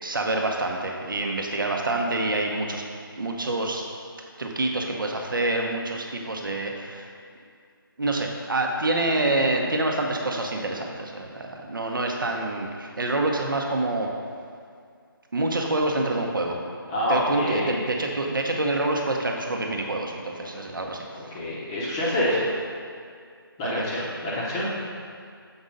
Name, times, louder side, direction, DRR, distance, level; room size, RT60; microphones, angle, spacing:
voice 1, 0.0-2.8 3.2-3.8 4.4-7.1 8.0-14.1 15.3-16.6 17.1-21.0 23.6-23.8, right 2 dB, 60° right, 1 dB, 0.9 m, -27 dB
voice 2, 16.9-17.8 21.1-22.4 23.6-24.7, left 1 dB, 15° left, -7 dB, 0.8 m, -26 dB
7.1 x 4.1 x 5.1 m, 2.3 s
figure-of-eight pair, 155°, 12 cm